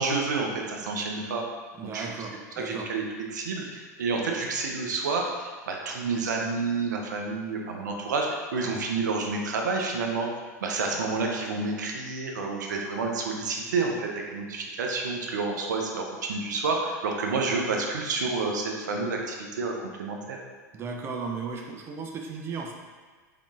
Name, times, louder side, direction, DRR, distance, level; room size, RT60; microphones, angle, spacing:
voice 1, 0.0-1.5 1.9-2.1 2.6-10.3 10.6-20.4, right 4 dB, 80° right, 1 dB, 0.5 m, -29 dB
voice 2, 1.8-2.8 20.7-22.7, right 4 dB, 25° right, 1 dB, 0.4 m, -35 dB
3.6 x 3.5 x 2.3 m, 1.4 s
hypercardioid pair, 95°, 10 cm